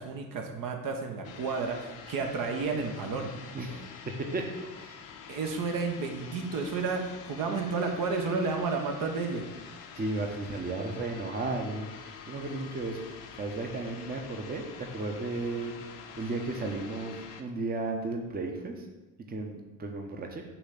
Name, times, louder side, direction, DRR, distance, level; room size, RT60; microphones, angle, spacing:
voice 1, 0.0-3.3 5.3-9.4, right 4 dB, 50° right, 3 dB, 1.0 m, -31 dB
sound 1, 1.2-17.4, left 7 dB, 50° left, 0.8 m, -47 dB
voice 2, 3.5-4.5 4.8-5.0 10.0-11.9 12.3-15.7 16.2-18.7 19.3-20.4, right 2 dB, 20° right, 3 dB, 0.9 m, -34 dB
5.7 x 3.2 x 5.7 m, 1.1 s
hypercardioid pair, 65°, 42 cm